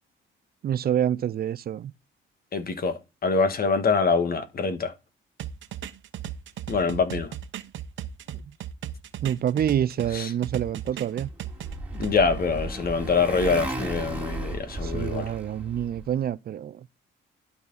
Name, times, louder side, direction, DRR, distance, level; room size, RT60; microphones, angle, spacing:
voice 1, 0.6-1.9 9.2-11.3 14.8-16.8, right 10 dB, 50° right, 0.5 m, -27 dB
voice 2, 2.5-4.9 6.7-7.3 10.1-10.3 11.9-15.2, left 4 dB, 50° left, 1.6 m, -25 dB
sound 1, 5.4-10.1 10.4-12.1, right 10 dB, 70° right, 1.0 m, -36 dB
Motorcycle, 11.1-16.1, right 2 dB, 5° right, 2.5 m, -34 dB
12.0 x 4.1 x 4.1 m
cardioid pair, 90°, 20 cm